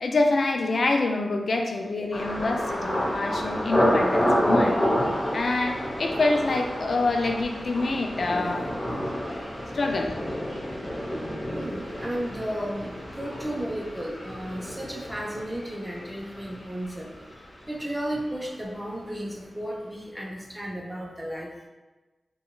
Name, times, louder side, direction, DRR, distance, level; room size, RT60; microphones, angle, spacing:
voice 1, 0.0-4.8 5.3-8.7 9.7-10.2, left 2 dB, 70° left, 3 dB, 0.3 m, -26 dB
Thunder, 2.1-17.9 18.1-18.8 19.2-19.4, equal, 35° left, 0.9 m, -29 dB
voice 2, 8.4-9.1 11.5-17.1 17.7-21.5, equal, 10° right, -2 dB, 0.5 m, -34 dB
3.9 x 2.2 x 2.3 m, 1.2 s
cardioid pair, 65°, 0 cm